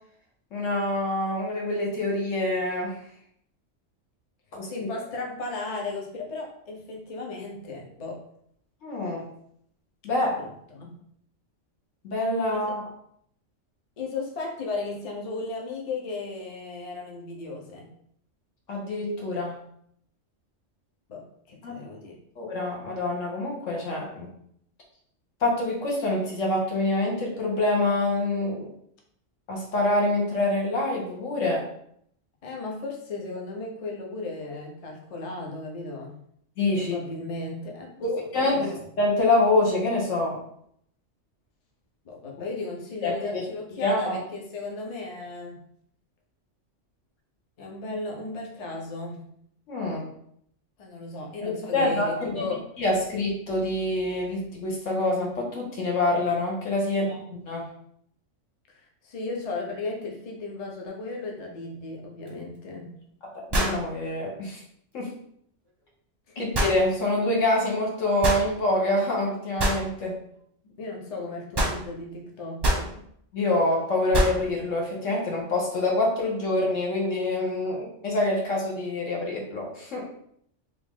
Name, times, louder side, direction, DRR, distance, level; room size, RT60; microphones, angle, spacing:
voice 1, 0.5-3.0 4.5-4.9 8.8-9.2 10.0-10.4 12.0-12.8 18.7-19.5 21.6-21.8 22.4-24.3 25.4-28.7 29.5-31.7 36.6-37.0 38.0-40.4 43.0-43.4 43.8-44.2 49.7-50.1 51.4-52.4 52.8-57.7 63.3-64.6 64.9-65.1 66.4-70.2 73.3-80.0, left 2 dB, 75° left, -2 dB, 1.3 m, -26 dB
voice 2, 4.7-8.2 10.2-11.0 12.5-12.6 14.0-17.9 21.1-22.2 32.4-36.2 36.8-38.8 42.0-45.6 47.6-49.2 50.8-52.7 56.8-57.1 58.7-63.0 66.4-66.5 70.7-73.0, left 3 dB, 40° left, -1 dB, 0.6 m, -35 dB
sound 1, 62.3-62.4 63.5-63.9 66.5-66.8 68.2-68.5 69.6-69.8 71.5-71.8 72.6-72.9 74.1-74.4, right 1 dB, 25° right, 0.6 m, -24 dB
3.2 x 2.6 x 3.5 m, 0.69 s
omnidirectional pair, 1.3 m